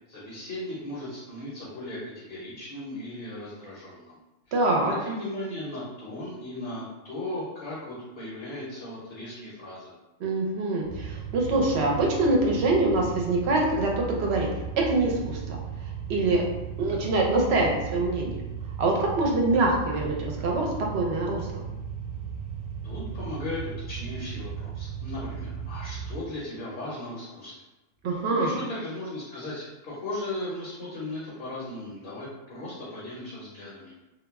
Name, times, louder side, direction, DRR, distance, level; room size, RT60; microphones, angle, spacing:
voice 1, 0.1-4.1 4.7-9.9 22.8-27.5 28.3-33.9, left 1 dB, 55° left, -7 dB, 0.7 m, -37 dB
voice 2, 4.5-4.9 10.2-14.5 14.8-15.6 16.1-16.4 16.8-18.3 18.8-21.6 28.0-28.6, right 2 dB, 65° right, -1 dB, 0.8 m, -24 dB
sound 1, 10.8-26.1, right 7 dB, 15° right, 0.4 m, -36 dB
2.2 x 2.0 x 3.4 m, 1.0 s
omnidirectional pair, 1.3 m